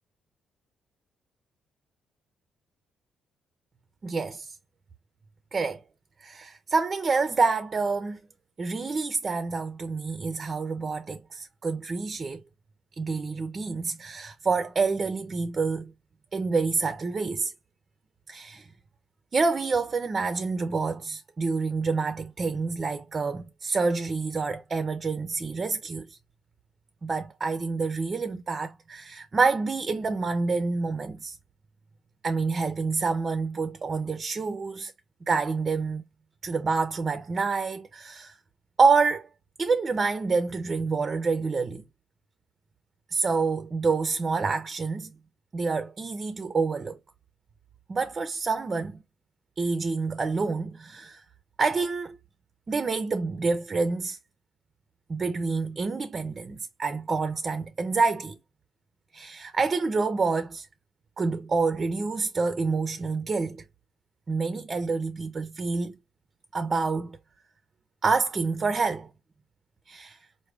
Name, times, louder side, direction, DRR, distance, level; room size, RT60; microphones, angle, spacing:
voice 1, 4.0-4.5 5.5-5.8 6.2-8.2 8.6-12.4 13.0-15.9 16.3-17.5 18.3-18.7 19.3-26.2 27.0-31.4 32.2-34.9 35.3-36.0 36.4-38.3 38.8-39.3 39.6-41.8 43.1-45.1 45.5-47.0 47.9-49.0 49.6-51.2 51.6-52.2 52.7-54.2 55.1-58.4 59.1-60.7 61.2-63.6 64.3-66.0 66.5-67.2 68.0-69.1 69.9-70.2, right 4 dB, 35° right, 0.6 m, -27 dB
4.8 x 2.2 x 3.3 m
cardioid pair, 90°, 0 cm